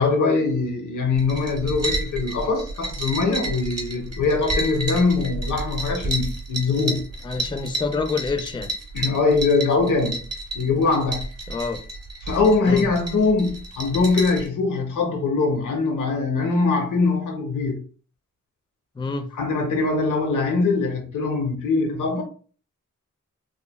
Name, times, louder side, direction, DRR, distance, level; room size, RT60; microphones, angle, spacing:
voice 1, 0.0-7.0 8.9-10.2 10.5-11.3 12.2-17.8 19.4-22.2, left 3 dB, 85° left, 0.7 m, -22 dB
sound 1, 1.1-14.5, right 1 dB, 55° right, 0.9 m, -31 dB
voice 2, 7.2-8.7 11.5-11.8 12.7-12.9 19.0-19.3, left 4 dB, 15° left, 0.3 m, -27 dB
3.1 x 2.1 x 2.2 m
cardioid pair, 60°, 30 cm